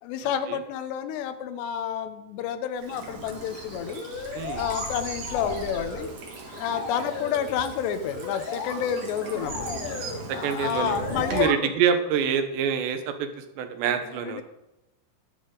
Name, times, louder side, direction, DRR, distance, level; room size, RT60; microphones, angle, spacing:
voice 1, 0.0-6.1 6.6-10.0 10.3-11.7 13.9-14.4, left 8 dB, 75° left, 10 dB, 2.7 m, -30 dB
Bird vocalization bird call bird song / Stream, 2.8-11.4, right 2 dB, 50° right, 2.2 m, -38 dB
sound 1, 3.8-4.9 5.2-6.2 6.4-7.5 8.0-8.8 9.2-10.2 10.8-11.6, left 5 dB, 55° left, 2.6 m, -36 dB
voice 2, 10.3-11.0 11.3-14.4, right 7 dB, 75° right, 7 dB, 3.1 m, -26 dB
14.5 x 11.5 x 3.9 m, 0.94 s
omnidirectional pair, 5.4 m